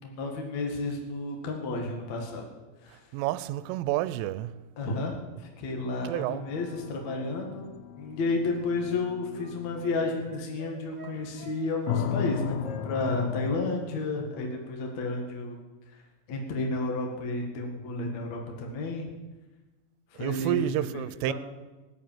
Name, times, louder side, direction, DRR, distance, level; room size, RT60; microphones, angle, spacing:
voice 1, 0.0-2.4 2.8-3.1 4.8-7.7 8.0-12.6 12.8-15.6 16.3-19.1 20.1-20.6 20.9-21.3, left 2 dB, 50° left, 2.4 m, -32 dB
voice 2, 3.1-4.5 6.0-6.4 20.2-21.3, right 14 dB, 90° right, 3.2 m, -29 dB
sound 1, 6.0-10.3 11.9-13.5, left 7 dB, 80° left, 2.2 m, -35 dB
Wind instrument woodwind instrument, 8.5-13.2 13.5-14.5 14.8-15.0, equal, ahead, 4.6 m, -48 dB
19.0 x 8.2 x 9.2 m
omnidirectional pair, 5.6 m